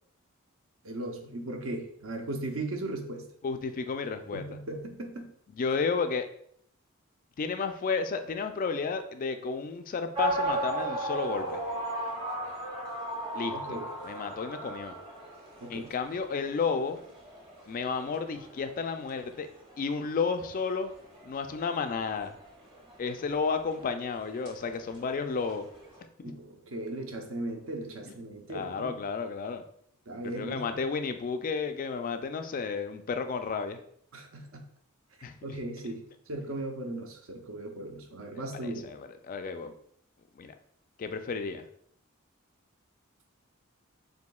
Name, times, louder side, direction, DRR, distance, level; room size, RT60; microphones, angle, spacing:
voice 1, 0.8-3.3 4.3-5.3 13.5-13.9 15.6-15.9 26.2-29.0 30.1-30.8 34.1-34.6 35.4-38.9, right 2 dB, 70° right, 3 dB, 0.7 m, -37 dB
voice 2, 3.4-4.4 5.5-6.3 7.4-11.6 13.3-13.8 14.0-14.9 15.7-17.0 17.7-19.5 19.8-20.9 21.2-22.3 23.0-25.7 26.2-26.3 28.1-28.2 28.5-29.6 30.2-33.8 35.2-35.3 38.3-39.8 40.4-40.5 41.0-41.6, left 5 dB, 40° left, 8 dB, 0.3 m, -32 dB
sound 1, 10.1-26.0, right 1 dB, 25° right, 0.9 m, -37 dB
7.0 x 2.6 x 2.3 m, 0.67 s
head